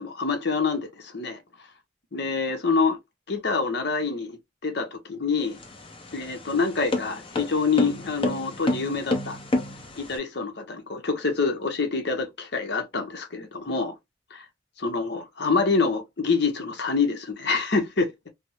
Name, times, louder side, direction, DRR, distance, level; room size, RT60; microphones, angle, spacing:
voice 1, 0.0-1.4 2.1-3.0 3.3-5.6 6.1-9.4 10.0-13.9 14.3-14.4 14.8-18.1, left 4 dB, 60° left, 0.9 m, -26 dB
sound 1, 5.4-10.2, left 2 dB, 30° left, 0.8 m, -29 dB
3.4 x 2.1 x 2.9 m
head